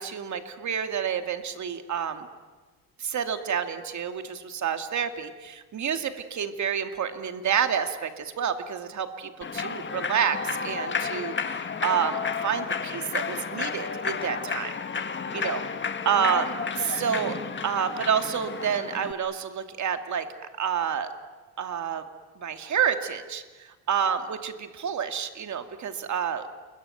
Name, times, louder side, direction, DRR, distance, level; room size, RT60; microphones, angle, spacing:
voice 1, 0.0-2.3 3.0-12.2 12.4-14.7 15.3-17.4 17.6-20.3 20.6-21.1 21.6-22.0 22.4-26.5, right 8 dB, 45° right, 7 dB, 2.5 m, -29 dB
Human voice / Clapping / Cheering, 9.4-19.1, left 5 dB, 30° left, 1.8 m, -32 dB
28.5 x 22.5 x 9.3 m, 1.3 s
cardioid pair, 120°, 38 cm